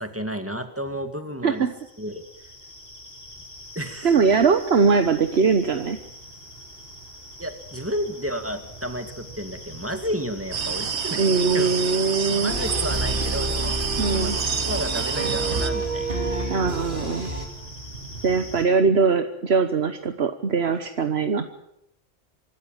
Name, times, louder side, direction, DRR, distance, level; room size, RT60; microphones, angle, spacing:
voice 1, 0.0-1.7 2.0-2.2 3.8-4.1 7.4-11.7 12.3-16.2, equal, 10° right, 7 dB, 2.1 m, -32 dB
sound 1, 1.6-18.6, equal, 65° left, 7.2 m, -42 dB
voice 2, 4.0-6.0 11.2-12.5 14.0-14.4 16.5-17.3 18.2-21.4, right 5 dB, 70° right, 8 dB, 1.4 m, -21 dB
sound 2, 10.5-15.7, right 6 dB, 90° right, 1.6 m, -28 dB
sound 3, 12.5-17.5, right 2 dB, 50° right, 3.3 m, -28 dB
25.0 x 13.5 x 9.1 m, 0.81 s
omnidirectional pair, 1.1 m